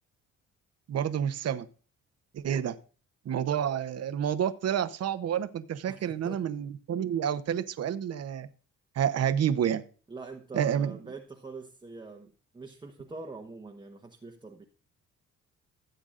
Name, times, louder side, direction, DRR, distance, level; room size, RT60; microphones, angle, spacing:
voice 1, 0.9-1.6 2.3-2.8 3.2-8.5 8.9-9.8 10.5-10.9, right 9 dB, 55° right, 12 dB, 0.9 m, -29 dB
voice 2, 5.9-6.4 10.1-14.6, right 3 dB, 15° right, 3 dB, 1.0 m, -44 dB
16.0 x 8.0 x 2.5 m, 0.38 s
cardioid pair, 90°, 30 cm